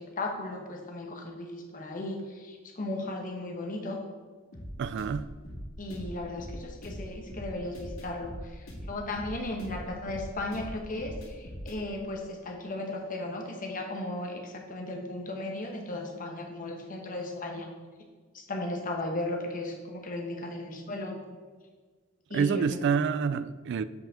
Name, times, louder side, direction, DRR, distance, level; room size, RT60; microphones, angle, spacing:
voice 1, 0.0-4.0 5.8-8.3 8.8-17.7 18.3-21.2 22.3-22.6, left 2 dB, 40° left, 1.1 m, -36 dB
sound 1, 4.5-11.8, equal, 80° left, 2.0 m, -41 dB
voice 2, 4.8-5.3 22.3-23.8, right 6 dB, 60° right, 0.3 m, -27 dB
7.6 x 5.4 x 3.7 m
head